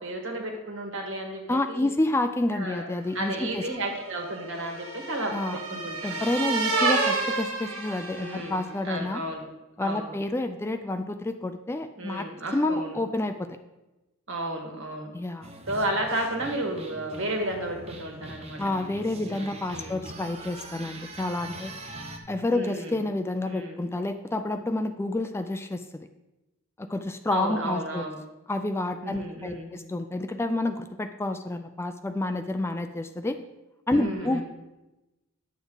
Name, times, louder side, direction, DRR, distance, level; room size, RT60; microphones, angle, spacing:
voice 1, 0.0-1.9 2.5-2.9 3.1-6.3 8.1-9.5 9.8-10.1 12.0-13.0 14.3-15.1 15.7-18.6 19.1-20.1 22.5-22.9 23.4-23.8 27.3-28.2 29.0-29.7 33.9-34.4, right 1 dB, 65° right, 2 dB, 1.7 m, -33 dB
voice 2, 1.5-3.6 5.3-5.6 6.0-9.2 9.8-13.5 15.1-15.5 18.6-21.7 22.3-26.1 26.8-28.0 28.5-33.4 33.9-34.4, left 2 dB, 10° left, 8 dB, 0.3 m, -29 dB
sound 1, 3.3-8.7, right 3 dB, 85° right, 2.0 m, -30 dB
sound 2, 15.4-22.2, right 2 dB, 30° right, 0.9 m, -43 dB
9.3 x 7.1 x 3.9 m, 1.0 s
head